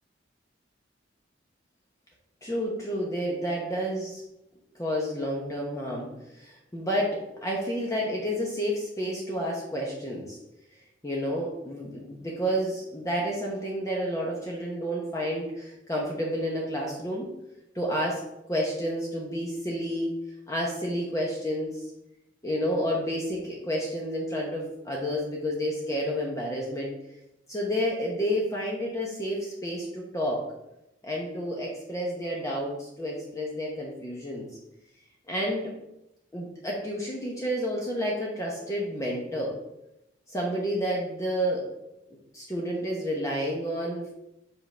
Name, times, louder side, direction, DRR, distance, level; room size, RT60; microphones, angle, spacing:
voice 1, 2.4-4.2 4.7-6.1 6.3-10.4 11.0-17.3 17.7-18.2 18.5-20.1 20.5-21.9 22.4-26.9 27.5-30.4 31.0-34.5 35.3-35.7 36.3-39.6 40.3-41.7 42.3-44.1, equal, 15° left, -3 dB, 0.9 m, -30 dB
5.2 x 3.8 x 5.4 m, 0.87 s
head